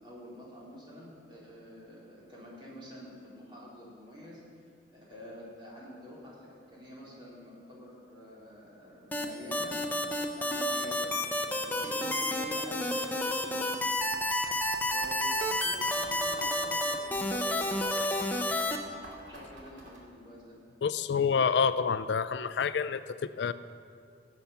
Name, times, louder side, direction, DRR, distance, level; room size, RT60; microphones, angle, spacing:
voice 1, 0.0-4.4 4.9-9.8 10.4-13.6 14.9-18.0 18.7-19.0 19.3-20.5, equal, 25° right, -6 dB, 3.7 m, -47 dB
sound 1, 9.1-18.8, left 1 dB, 10° left, 0.8 m, -30 dB
sound 2, 14.0-20.0, right 2 dB, 90° right, 2.5 m, -49 dB
voice 2, 20.8-23.5, left 6 dB, 75° left, 14 dB, 0.4 m, -28 dB
16.5 x 8.3 x 5.8 m, 2.2 s
head